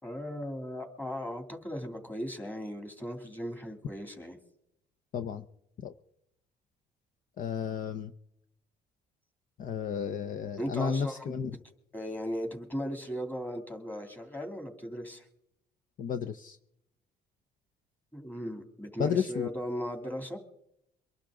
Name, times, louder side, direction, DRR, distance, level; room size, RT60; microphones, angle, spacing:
voice 1, 0.0-4.4 10.6-11.4 11.9-15.2 18.1-20.4, equal, 10° left, 5 dB, 2.8 m, -37 dB
voice 2, 5.1-5.4 5.8-5.9 7.4-8.1 9.6-11.6 16.0-16.6 19.0-19.5, left 7 dB, 50° left, 10 dB, 0.8 m, -32 dB
24.0 x 11.5 x 3.8 m, 0.76 s
cardioid pair, 110°, 17 cm